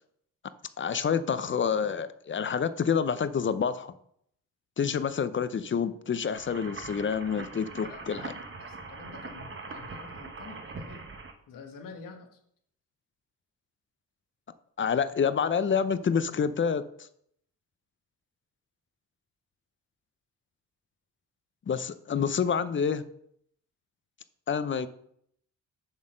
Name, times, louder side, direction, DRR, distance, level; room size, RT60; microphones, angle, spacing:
voice 1, 0.8-3.9 4.8-8.3 14.8-17.1 21.7-23.0 24.5-24.9, left 6 dB, 40° left, 14 dB, 0.6 m, -28 dB
sound 1, 6.3-11.3, right 3 dB, 40° right, 1.0 m, -42 dB
voice 2, 8.6-11.1 11.5-12.3, left 5 dB, 85° left, 4 dB, 1.4 m, -47 dB
7.2 x 4.0 x 6.4 m, 0.70 s
cardioid pair, 75°, 32 cm